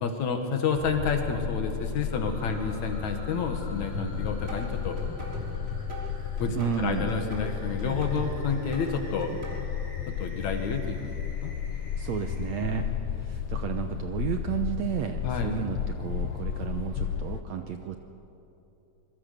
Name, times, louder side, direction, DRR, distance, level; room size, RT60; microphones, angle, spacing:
voice 1, 0.0-5.0 6.4-9.3 10.1-11.1 11.4-11.5 12.6-13.0 15.2-15.6, left 5 dB, 60° left, 5 dB, 2.8 m, -30 dB
sound 1, 0.7-17.4, left 9 dB, 85° left, 1.5 m, -33 dB
sound 2, 2.1-12.7, left 1 dB, 20° left, 7.4 m, -51 dB
sound 3, 3.9-9.5, equal, 15° right, 4.1 m, -38 dB
voice 2, 6.5-7.2 12.0-12.8 13.2-18.0, right 9 dB, 70° right, 6 dB, 1.8 m, -32 dB
26.0 x 22.0 x 6.7 m, 2.8 s
omnidirectional pair, 3.9 m